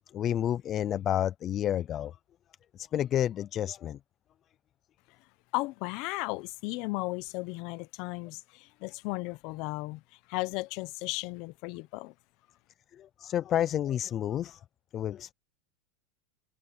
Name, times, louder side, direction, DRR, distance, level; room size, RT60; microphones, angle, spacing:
voice 1, 0.1-2.2 2.8-4.0 13.0-14.6 14.9-15.3, left 11 dB, 25° left, 0.4 m, -30 dB
voice 2, 5.5-12.1, left 22 dB, 45° left, 0.8 m, -35 dB
supercardioid pair, 165°, 0 cm